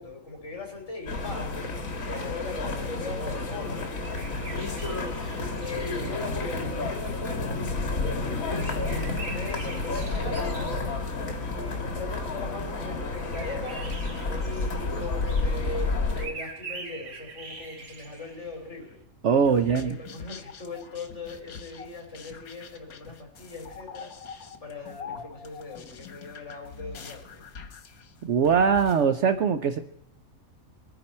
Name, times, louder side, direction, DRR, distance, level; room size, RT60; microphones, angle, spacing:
voice 1, 0.0-3.9 5.0-7.6 8.1-10.6 11.2-13.8 14.3-19.0 19.6-27.4, left 3 dB, 50° left, 1 dB, 4.0 m, -40 dB
sound 1, 1.1-16.3, left 3 dB, 70° left, 2.1 m, -30 dB
sound 2, 4.0-6.3 8.5-11.0 13.2-18.7, right 4 dB, 80° right, 1.9 m, -43 dB
voice 2, 19.2-20.0 28.2-29.8, right 6 dB, 60° right, 9 dB, 0.9 m, -22 dB
sound 3, 19.5-29.1, left 6 dB, 90° left, 1.6 m, -44 dB
22.0 x 9.8 x 4.3 m, 0.81 s
omnidirectional pair, 1.5 m